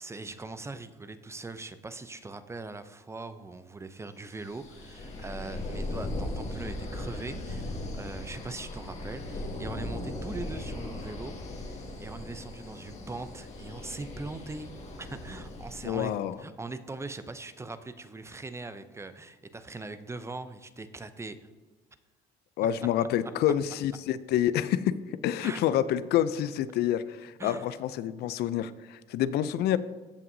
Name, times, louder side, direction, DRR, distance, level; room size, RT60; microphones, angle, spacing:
voice 1, 0.0-14.7 15.0-16.1 16.4-21.5 25.4-25.6 27.4-27.7, right 3 dB, 15° right, 11 dB, 0.5 m, -41 dB
sound 1, 4.4-16.1, left 1 dB, 40° left, 1.6 m, -38 dB
voice 2, 15.8-16.4 22.6-29.8, left 11 dB, 70° left, 15 dB, 0.4 m, -28 dB
14.5 x 5.7 x 2.7 m, 1.3 s
cardioid pair, 110°, 17 cm